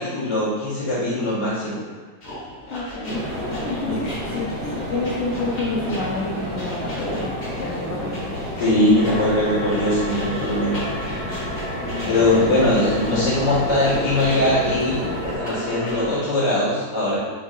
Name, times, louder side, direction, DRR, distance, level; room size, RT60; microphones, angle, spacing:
voice 1, 0.0-1.8 3.8-4.0 8.6-10.8 12.1-17.2, left 1 dB, 85° left, -10 dB, 2.0 m, -21 dB
sound 1, 2.2-9.1 9.7-14.9 15.4-15.9, left 1 dB, 45° left, 0.9 m, -37 dB
voice 2, 2.7-7.3 7.6-8.3 11.9-12.6, left 3 dB, 65° left, -6 dB, 0.7 m, -29 dB
sound 2, 3.1-15.4, equal, 45° right, 0.7 m, -31 dB
sound 3, 8.9-16.2, equal, 65° right, 1.2 m, -32 dB
4.5 x 2.8 x 2.4 m, 1.4 s
omnidirectional pair, 1.7 m